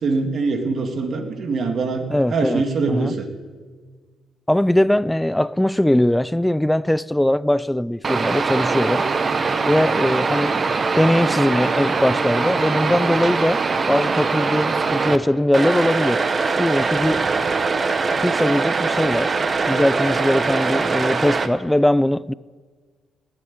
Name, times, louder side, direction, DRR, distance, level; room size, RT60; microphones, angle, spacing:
voice 1, 0.0-3.3, right 4 dB, 55° right, 2.1 m, -23 dB
voice 2, 2.1-3.2 4.5-9.0 9.7-10.6 11.0-13.6 13.9-16.2 16.6-17.2 18.2-19.4 19.7-22.3, left 1 dB, 5° left, 0.3 m, -20 dB
sound 1, 8.0-15.2 15.5-21.5, right 4 dB, 40° right, 1.0 m, -22 dB
18.5 x 7.8 x 8.6 m
cardioid pair, 90°, 0 cm